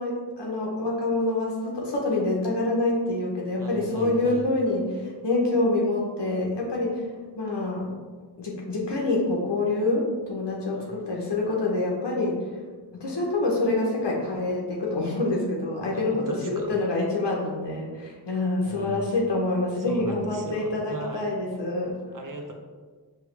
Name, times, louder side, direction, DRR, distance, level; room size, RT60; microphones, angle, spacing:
voice 1, 0.0-7.0 7.4-7.9 8.4-12.4 12.9-22.0, left 2 dB, 85° left, -3 dB, 0.8 m, -26 dB
voice 2, 3.6-4.4 10.7-11.0 15.9-16.8 18.6-19.1 19.9-21.3 22.1-22.5, right 2 dB, 50° right, 2 dB, 0.7 m, -38 dB
5.0 x 2.3 x 3.1 m, 1.5 s
wide cardioid pair, 45°, 41 cm